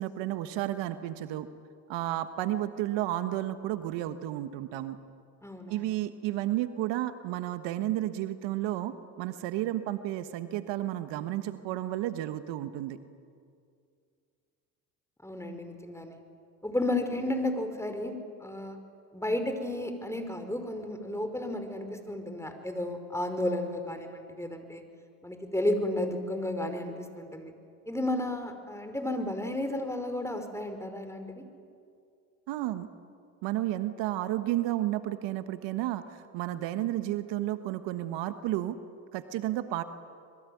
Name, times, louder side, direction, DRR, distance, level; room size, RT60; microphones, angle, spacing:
voice 1, 0.0-1.5 1.9-5.0 5.7-13.0 32.5-32.9 33.4-38.8 39.1-39.8, right 14 dB, 70° right, 11 dB, 1.4 m, -32 dB
voice 2, 5.4-5.9 15.2-16.2 16.6-18.8 19.1-24.8 25.2-27.5 27.9-31.4, left 1 dB, 5° left, 7 dB, 5.1 m, -33 dB
26.5 x 22.0 x 9.4 m, 2.3 s
hypercardioid pair, 65°, 45 cm